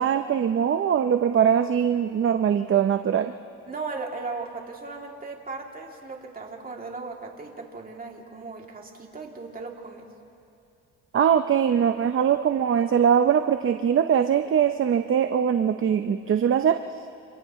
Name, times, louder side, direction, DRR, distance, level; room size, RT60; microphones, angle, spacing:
voice 1, 0.0-3.3 11.1-16.8, right 8 dB, 45° right, 8 dB, 0.7 m, -22 dB
voice 2, 3.7-10.1, right 3 dB, 30° right, 0 dB, 2.8 m, -37 dB
29.5 x 27.5 x 3.2 m, 2.5 s
cardioid pair, 90°, 30 cm